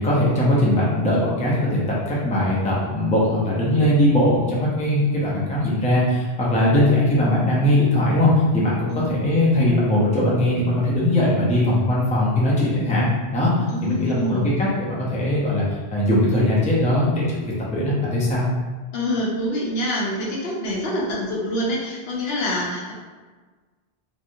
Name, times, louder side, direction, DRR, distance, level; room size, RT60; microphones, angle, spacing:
voice 1, 0.0-13.5 13.8-15.6 15.9-18.5, left 1 dB, 10° left, -7 dB, 0.5 m, -20 dB
voice 2, 13.7-14.6 18.9-22.9, equal, 70° left, -4 dB, 1.0 m, -26 dB
3.1 x 2.6 x 2.6 m, 1.4 s
omnidirectional pair, 1.1 m